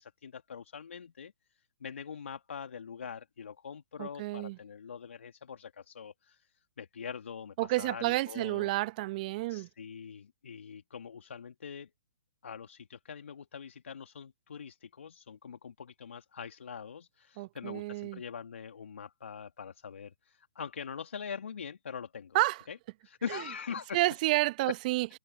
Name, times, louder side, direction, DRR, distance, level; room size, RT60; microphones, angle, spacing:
voice 1, 0.0-1.3 1.8-8.7 9.5-11.9 12.4-22.4 22.7-24.0 24.7-24.8, left 7 dB, 70° left, 2.2 m, -43 dB
voice 2, 4.0-4.6 7.6-9.7 17.4-18.2 22.3-22.6 23.3-23.4 23.9-25.1, right 19 dB, 40° right, 0.9 m, -30 dB
figure-of-eight pair, 130°, 7 cm